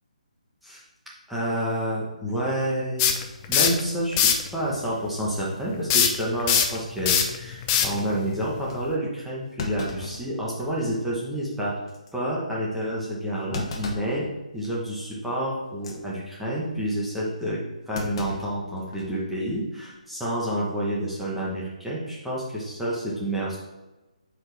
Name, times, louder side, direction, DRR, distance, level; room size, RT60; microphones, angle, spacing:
voice 1, 1.3-3.1 3.5-11.7 12.1-14.3 14.5-17.6 17.9-23.6, right 1 dB, ahead, -7 dB, 1.1 m, -29 dB
sound 1, 3.0-3.8 4.1-4.5 5.9-8.9, left 8 dB, 20° left, 0.5 m, -22 dB
Thump thud, 8.7-8.8 9.6-10.9 11.3-11.4 11.9-12.1 13.5-14.2 14.6-14.9 15.7-16.0 17.9-19.2 19.5-19.6 20.7-21.0, left 3 dB, 40° left, 1.0 m, -36 dB
7.7 x 4.8 x 3.4 m, 1.1 s
hypercardioid pair, 160°, 4 cm